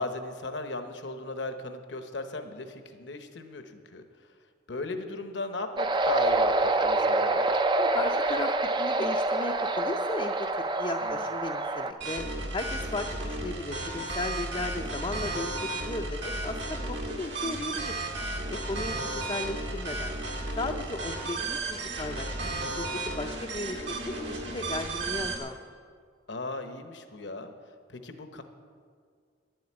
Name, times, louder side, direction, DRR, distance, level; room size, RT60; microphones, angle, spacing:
voice 1, 0.0-4.3 4.7-7.4 11.0-11.3 26.3-27.5 27.9-28.4, left 2 dB, 70° left, 7 dB, 1.0 m, -37 dB
lofi beach, 5.8-11.9, right 2 dB, 25° right, 0.5 m, -26 dB
voice 2, 7.8-8.5 8.8-10.5 10.8-12.2 12.5-18.0 18.5-20.2 20.6-22.9 23.2-23.8 24.2-25.6, left 2 dB, 30° left, 2 dB, 0.5 m, -36 dB
sound 1, 12.0-25.4, right 2 dB, 70° right, 2.1 m, -34 dB
11.0 x 7.9 x 8.6 m, 2.1 s
head